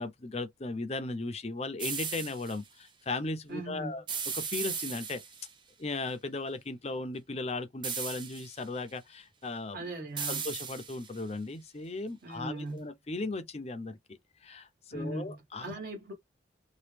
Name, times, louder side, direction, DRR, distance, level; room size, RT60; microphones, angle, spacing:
voice 1, 0.0-4.0 4.3-5.2 5.8-9.9 10.3-15.8, left 2 dB, 35° left, 0.6 m, -37 dB
sound 1, 1.8-2.6 4.1-5.5 7.8-8.6 10.2-11.2, right 6 dB, 25° right, 0.5 m, -36 dB
voice 2, 3.5-3.9 9.7-10.5 12.2-12.9 14.9-16.1, right 2 dB, 50° right, 1.5 m, -39 dB
3.0 x 2.4 x 3.3 m
head